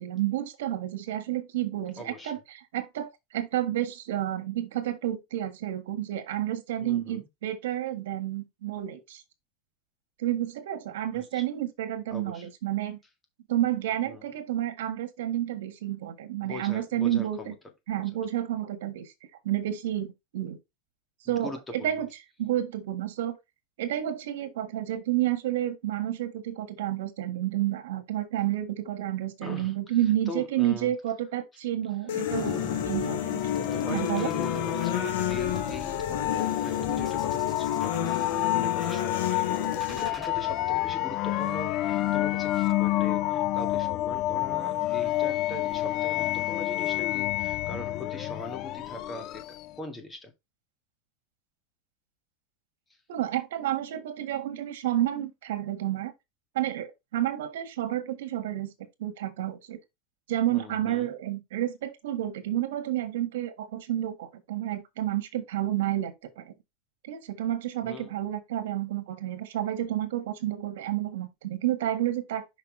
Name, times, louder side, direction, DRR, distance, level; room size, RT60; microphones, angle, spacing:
voice 1, 0.0-9.2 10.2-13.0 13.5-17.5 17.9-19.1 19.4-20.6 21.2-22.1 22.4-23.4 23.8-33.4 33.9-34.3 53.1-56.1 56.5-58.7 59.0-59.8 60.3-66.5 67.0-72.5, right 12 dB, 85° right, 1.6 m, -30 dB
voice 2, 2.0-2.3 6.8-7.3 11.1-11.4 12.1-12.5 14.1-14.3 16.4-17.5 17.9-18.0 21.3-22.1 29.4-30.0 30.3-30.9 33.7-49.4 49.8-50.3 52.9-53.0 60.5-61.1 67.8-68.2, left 2 dB, 15° left, 1.9 m, -41 dB
sound 1, 32.1-40.1, left 10 dB, 85° left, 1.9 m, -30 dB
sound 2, 32.3-49.8, left 16 dB, 45° left, 0.7 m, -29 dB
sound 3, 32.3-40.3, right 2 dB, 10° right, 1.6 m, -44 dB
5.9 x 5.7 x 3.3 m
supercardioid pair, 135°, 0 cm